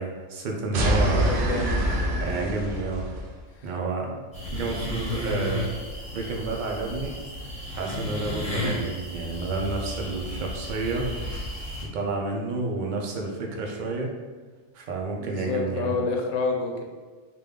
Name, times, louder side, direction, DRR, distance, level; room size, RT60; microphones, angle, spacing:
voice 1, 0.0-1.3 2.2-3.0 3.6-4.2 4.5-5.7 6.1-7.2 7.7-11.1 11.9-14.1 14.7-15.9, right 3 dB, 55° right, 0 dB, 0.5 m, -30 dB
sound 1, 0.7-3.3, right 1 dB, 70° right, 0.9 m, -25 dB
voice 2, 0.8-2.0 15.2-16.8, left 4 dB, 85° left, 2 dB, 0.9 m, -29 dB
sound 2, 4.3-11.8, left 1 dB, 5° left, 1.2 m, -33 dB
3.3 x 2.3 x 3.5 m, 1.4 s
omnidirectional pair, 1.3 m